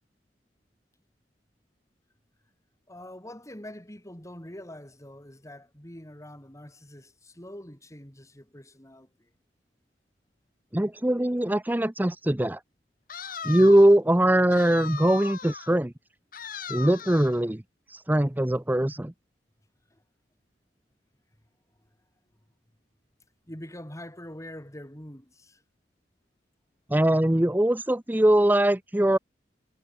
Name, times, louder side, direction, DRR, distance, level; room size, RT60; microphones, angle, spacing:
voice 1, 2.9-9.3 19.9-20.0 23.5-25.6, left 1 dB, 20° left, 5.5 m, -44 dB
voice 2, 10.7-12.6 13.4-15.9 16.7-17.6 17.9-19.1 26.9-29.2, right 1 dB, 10° right, 0.7 m, -21 dB
sound 1, 13.1-14.0 14.5-15.7 16.3-17.4, left 6 dB, 55° left, 4.9 m, -38 dB
head